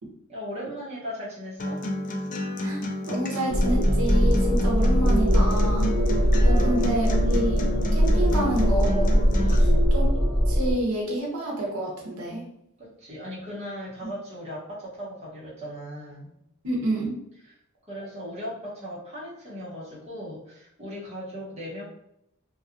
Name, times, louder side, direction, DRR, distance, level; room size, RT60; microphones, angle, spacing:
voice 1, 0.3-1.9 6.1-7.0 8.2-8.4 9.4-9.9 12.8-16.3 17.4-17.5 17.9-21.8, equal, 30° right, -7 dB, 0.9 m, -38 dB
Acoustic guitar, 1.6-9.6, left 1 dB, 40° left, 0.4 m, -31 dB
voice 2, 3.1-5.9 6.4-9.2 9.9-10.1 10.4-12.4 16.6-17.2, right 1 dB, 90° right, -2 dB, 0.7 m, -28 dB
sound 1, 3.5-10.7, equal, 10° right, 0.7 m, -21 dB
2.6 x 2.3 x 2.5 m, 0.77 s
head